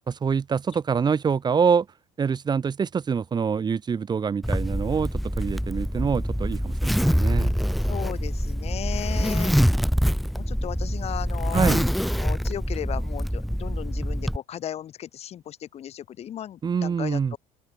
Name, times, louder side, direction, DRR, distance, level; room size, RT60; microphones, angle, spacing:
voice 1, 0.1-1.9 2.2-7.5 11.5-11.9 16.6-17.3, right 6 dB, 30° right, 2.4 m, -25 dB
Zipper (clothing), 4.4-14.4, equal, ahead, 1.3 m, -25 dB
voice 2, 7.9-9.5 10.3-11.8 12.2-17.4, left 10 dB, 50° left, 3.8 m, -35 dB
open air
cardioid pair, 100°, 14 cm